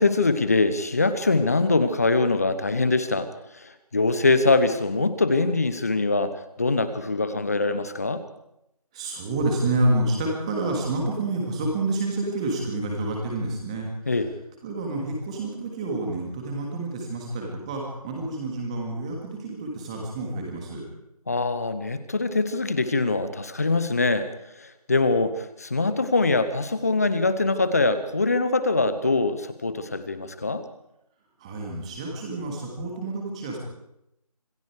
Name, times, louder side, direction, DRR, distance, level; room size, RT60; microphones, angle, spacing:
voice 1, 0.0-3.3 3.5-6.3 6.6-8.2 14.1-14.3 21.3-24.3 24.6-30.6, left 3 dB, 25° left, 12 dB, 1.1 m, -23 dB
voice 2, 8.9-13.9 14.6-20.8 31.4-33.6, right 2 dB, 10° right, -1 dB, 2.6 m, -28 dB
26.5 x 19.5 x 5.0 m, 0.84 s
figure-of-eight pair, 165°, 20 cm